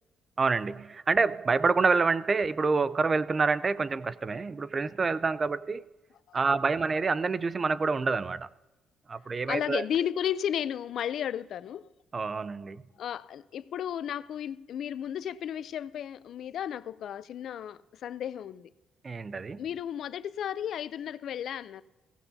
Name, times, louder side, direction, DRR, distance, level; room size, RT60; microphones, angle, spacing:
voice 1, 0.4-5.8 6.3-8.5 9.1-9.8 12.1-12.8 19.0-19.6, right 4 dB, 35° right, 0.4 m, -27 dB
voice 2, 9.5-11.9 13.0-18.7 19.6-21.8, left 9 dB, 70° left, 0.4 m, -34 dB
16.5 x 15.5 x 2.7 m
cardioid pair, 90°, 0 cm